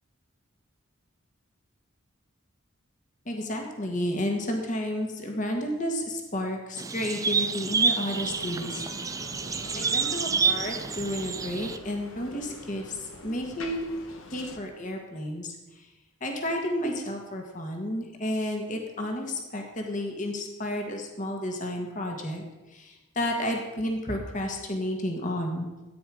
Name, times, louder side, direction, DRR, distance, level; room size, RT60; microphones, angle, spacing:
voice 1, 3.2-8.8 9.4-13.8 14.3-15.9 16.2-25.7, left 1 dB, 40° left, 2 dB, 1.6 m, -32 dB
sound 1, 6.8-11.8, right 5 dB, 15° right, 0.4 m, -28 dB
Bicycle, 8.1-14.6, left 2 dB, 90° left, 1.3 m, -45 dB
14.0 x 9.3 x 5.0 m, 1.1 s
head